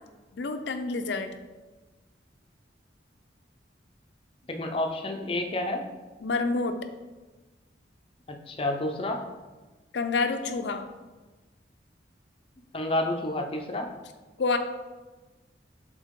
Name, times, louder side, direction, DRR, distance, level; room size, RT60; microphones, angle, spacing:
voice 1, 0.3-1.3 6.2-6.8 9.9-10.9 14.4-14.6, left 3 dB, 75° left, 8 dB, 0.5 m, -28 dB
voice 2, 4.5-5.9 8.3-9.2 12.7-13.9, left 1 dB, 30° left, 4 dB, 0.6 m, -29 dB
7.3 x 3.5 x 3.6 m, 1.2 s
head